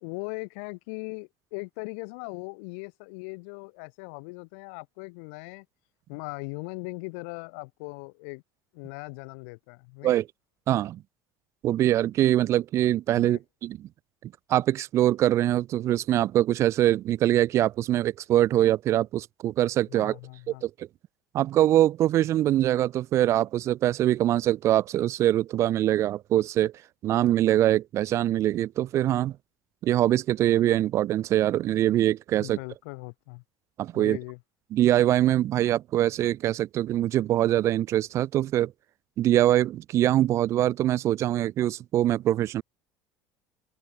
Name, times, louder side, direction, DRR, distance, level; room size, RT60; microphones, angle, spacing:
voice 1, 0.0-5.7 6.1-8.4 8.7-10.2 13.2-13.4 19.9-20.7 32.4-33.4 33.9-34.4, left 33 dB, 85° left, 5.2 m, -39 dB
voice 2, 10.7-11.0 11.6-13.9 14.2-20.2 20.6-20.9 21.3-26.7 27.0-29.3 29.8-32.6 33.8-34.2 34.7-38.7 39.2-42.6, right 13 dB, 40° right, 0.5 m, -23 dB
open air
cardioid pair, 145°, 7 cm